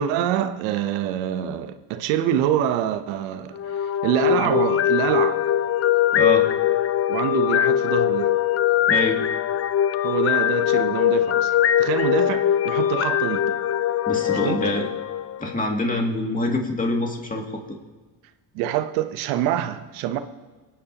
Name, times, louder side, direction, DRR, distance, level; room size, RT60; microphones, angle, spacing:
voice 1, 0.0-5.4 7.1-8.3 10.0-13.6 14.4-14.6 18.5-20.2, right 11 dB, 85° right, 0.9 m, -25 dB
sound 1, 3.5-15.7, left 11 dB, 35° left, 0.4 m, -21 dB
voice 2, 6.1-6.5 8.9-9.2 14.1-14.9 15.4-17.5, left 2 dB, 20° left, 2.3 m, -25 dB
22.5 x 9.6 x 2.9 m
supercardioid pair, 80°, 45 cm